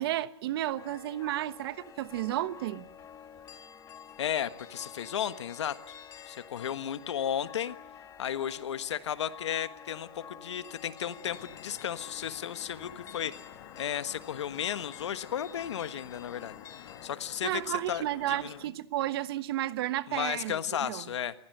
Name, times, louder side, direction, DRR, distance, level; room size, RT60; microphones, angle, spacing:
voice 1, 0.0-2.9 17.4-21.0, right 14 dB, 60° right, 1.3 m, -32 dB
sound 1, 0.8-17.1, left 8 dB, 20° left, 1.6 m, -50 dB
voice 2, 4.2-5.9 6.3-7.7 8.2-13.3 13.8-16.6 17.0-18.6 20.1-21.3, left 9 dB, 80° left, 1.4 m, -34 dB
sound 2, 11.3-18.7, left 12 dB, 55° left, 1.8 m, -50 dB
28.5 x 15.5 x 7.9 m
hypercardioid pair, 135°, 14 cm